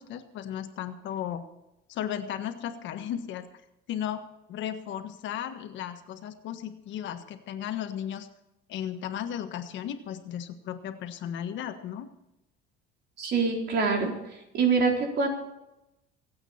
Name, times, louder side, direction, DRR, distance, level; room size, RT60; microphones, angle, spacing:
voice 1, 0.0-1.4 1.9-3.5 3.9-4.2 4.5-8.3 8.7-12.1, left 10 dB, 60° left, 8 dB, 1.5 m, -35 dB
voice 2, 13.2-14.1 14.5-15.3, right 4 dB, 50° right, 1 dB, 3.9 m, -24 dB
26.0 x 8.8 x 4.2 m, 0.91 s
cardioid pair, 140°, 21 cm